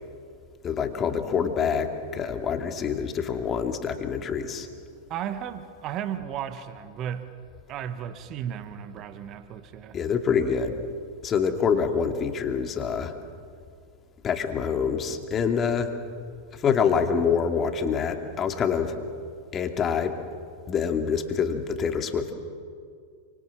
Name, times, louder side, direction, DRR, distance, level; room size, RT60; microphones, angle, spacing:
voice 1, 0.6-4.7 9.9-10.8 11.2-13.1 14.2-15.9 16.5-19.0 19.5-20.1 20.7-22.3, left 6 dB, 25° left, 6 dB, 2.6 m, -26 dB
voice 2, 5.1-7.4 7.7-10.0, right 9 dB, 35° right, 11 dB, 1.7 m, -34 dB
30.0 x 25.5 x 7.6 m, 2.2 s
figure-of-eight pair, 90°, 0 cm